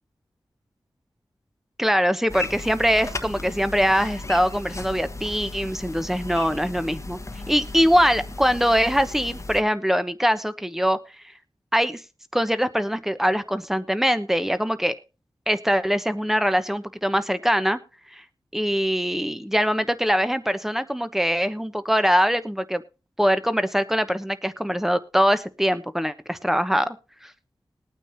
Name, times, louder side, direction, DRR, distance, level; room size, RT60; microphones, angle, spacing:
voice 1, 1.8-7.2 7.5-11.0 11.7-12.0 12.3-14.9 15.5-17.8 18.1-18.2 18.5-22.8 23.2-27.0 27.2-27.3, equal, 5° right, 12 dB, 1.0 m, -22 dB
sound 1, 2.3-9.6, left 2 dB, 30° left, 1.2 m, -36 dB
21.0 x 9.1 x 2.7 m, 0.31 s
wide cardioid pair, 60°, 9 cm